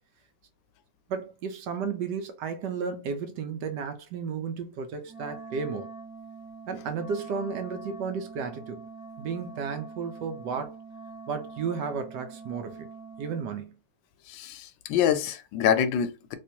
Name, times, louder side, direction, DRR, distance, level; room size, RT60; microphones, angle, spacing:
voice 1, 1.1-5.9 6.7-8.8 9.2-10.8 11.3-12.9 13.2-13.8, right 5 dB, 70° right, 1.2 m, -33 dB
Wind instrument woodwind instrument, 5.1-13.5, right 4 dB, 5° right, 0.4 m, -44 dB
voice 2, 14.3-16.4, left 9 dB, 80° left, 1.3 m, -26 dB
3.5 x 3.0 x 2.7 m
omnidirectional pair, 2.1 m